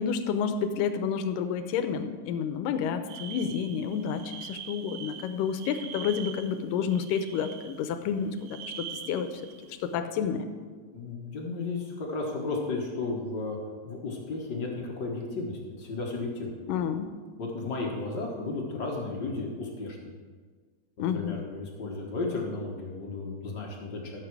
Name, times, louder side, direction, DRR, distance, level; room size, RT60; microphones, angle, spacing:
voice 1, 0.0-8.6 9.1-9.3 9.8-10.5 16.7-17.1 21.0-21.4, left 7 dB, 75° left, 9 dB, 2.3 m, -29 dB
sound 1, 3.1-8.0 8.3-10.0, right 8 dB, 80° right, 2.5 m, -43 dB
voice 2, 10.9-13.6 13.8-16.5 17.4-20.2 21.0-24.2, left 3 dB, 55° left, -1 dB, 1.2 m, -34 dB
14.0 x 7.5 x 4.7 m, 1.5 s
omnidirectional pair, 4.2 m